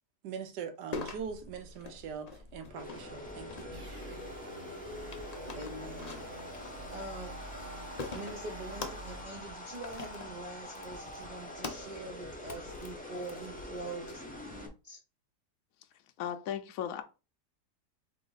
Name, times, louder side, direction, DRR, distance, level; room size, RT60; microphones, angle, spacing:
voice 1, 0.2-3.7, right 7 dB, 80° right, 1.3 m, -42 dB
sound 1, 0.9-14.1, left 4 dB, 85° left, 0.3 m, -46 dB
sound 2, 2.7-14.7, left 1 dB, 10° left, 0.4 m, -45 dB
sound 3, 3.7-9.2, right 1 dB, 40° right, 0.8 m, -47 dB
voice 2, 5.6-6.3 6.6-7.4 8.1-15.0, right 2 dB, 65° right, 0.4 m, -44 dB
voice 3, 16.2-17.0, left 9 dB, 70° left, 0.9 m, -36 dB
4.0 x 3.3 x 3.8 m
omnidirectional pair, 1.8 m